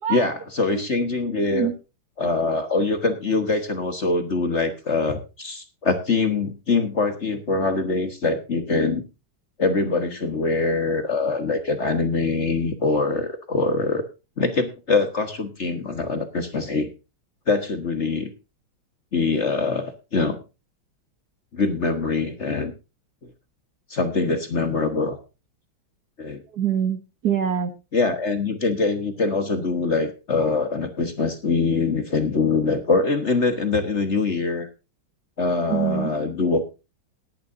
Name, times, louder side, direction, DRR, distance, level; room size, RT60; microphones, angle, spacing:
voice 1, 0.1-1.7 2.2-9.0 9.6-14.0 14.4-16.9 17.5-18.3 19.1-20.4 21.5-22.7 23.9-25.2 26.2-26.4 27.9-34.7 35.4-36.7, left 3 dB, 40° left, 8 dB, 1.5 m, -23 dB
voice 2, 26.5-27.7 35.7-36.1, right 9 dB, 55° right, 10 dB, 1.6 m, -24 dB
18.0 x 10.5 x 2.6 m, 0.28 s
omnidirectional pair, 2.2 m